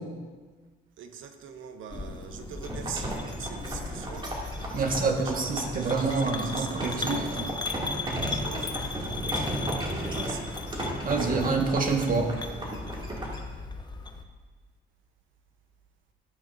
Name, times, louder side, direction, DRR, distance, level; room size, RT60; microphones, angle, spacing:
voice 1, 1.0-4.3 4.8-9.1 9.9-10.5, right 7 dB, 80° right, 7 dB, 0.9 m, -43 dB
sound 1, 1.9-14.2, left 3 dB, 20° left, 0.8 m, -37 dB
sound 2, 2.6-13.4, right 1 dB, 25° right, 2.4 m, -35 dB
voice 2, 4.7-7.2 11.0-12.3, right 4 dB, 45° right, 2 dB, 1.5 m, -27 dB
13.5 x 8.8 x 2.6 m, 1.5 s
cardioid pair, 90°, 20 cm